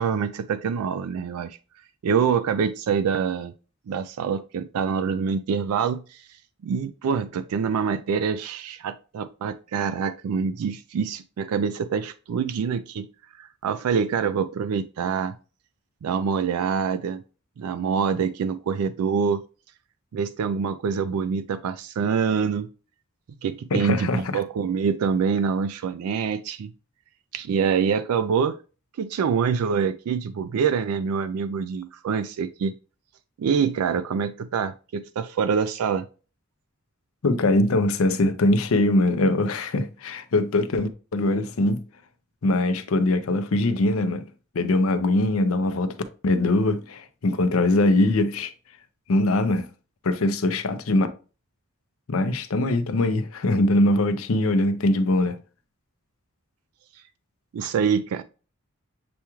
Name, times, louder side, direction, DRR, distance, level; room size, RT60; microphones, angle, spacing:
voice 1, 0.0-1.6 2.0-3.5 3.9-6.2 6.6-13.1 13.4-15.3 16.0-17.2 17.6-19.4 20.1-22.7 23.4-26.7 27.3-28.6 29.0-32.7 33.4-36.1 57.5-58.2, right 6 dB, 85° right, 0.3 m, -25 dB
voice 2, 23.7-24.4 37.2-41.8 42.4-44.2 44.5-45.9 46.2-48.5 49.1-49.7 50.0-51.1 52.1-55.4, left 2 dB, 70° left, 0.5 m, -22 dB
6.9 x 2.3 x 2.9 m
head